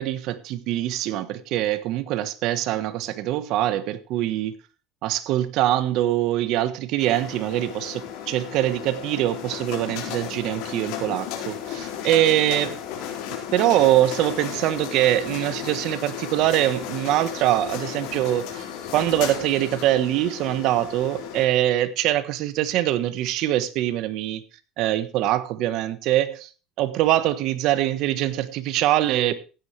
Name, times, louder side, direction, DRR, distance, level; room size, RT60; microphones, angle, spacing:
voice 1, 0.0-4.6 5.0-12.7 13.5-18.7 18.9-24.4 24.8-26.5 26.8-29.3, right 13 dB, 60° right, 1.2 m, -23 dB
sound 1, 7.0-21.4, left 9 dB, 75° left, 4.3 m, -34 dB
15.5 x 10.0 x 3.3 m
cardioid pair, 130°, 0 cm